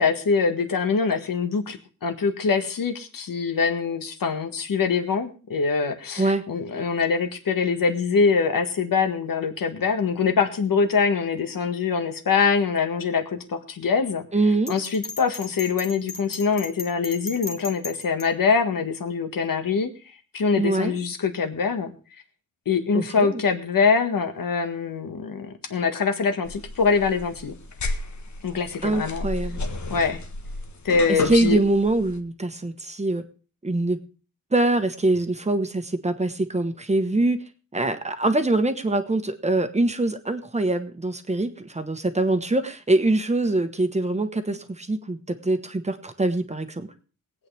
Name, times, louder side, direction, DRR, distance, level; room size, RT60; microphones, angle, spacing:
voice 1, 0.0-14.2 14.7-19.9 20.3-21.9 22.6-27.5 28.4-29.3 29.9-30.2 30.8-31.6, left 5 dB, 80° left, 6 dB, 1.7 m, -24 dB
voice 2, 14.3-14.7 20.6-21.0 22.9-23.4 28.8-29.6 31.1-33.2 33.6-34.0 34.5-37.4 37.7-46.9, right 2 dB, 20° right, 8 dB, 1.2 m, -24 dB
Bell, 14.7-18.3, left 3 dB, 40° left, 2.0 m, -36 dB
sound 1, 26.4-32.2, left 2 dB, 60° left, 1.4 m, -33 dB
22.0 x 8.7 x 3.4 m, 0.36 s
wide cardioid pair, 120°, 33 cm